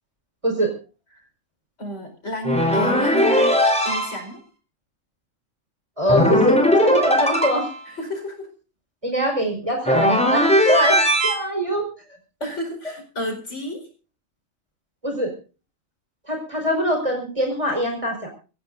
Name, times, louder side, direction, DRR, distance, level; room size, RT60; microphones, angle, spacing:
voice 1, 1.8-4.4 7.8-8.5 12.4-13.9, equal, 65° left, 4 dB, 5.0 m, -31 dB
sound 1, 2.4-4.2 6.1-7.8 9.8-11.4, equal, 5° left, 3.8 m, -18 dB
voice 2, 6.0-7.7 9.0-11.0 11.2-11.8 15.0-15.3 16.3-18.3, equal, 25° right, 3 dB, 4.7 m, -23 dB
25.0 x 15.5 x 2.6 m, 0.35 s
omnidirectional pair, 1.3 m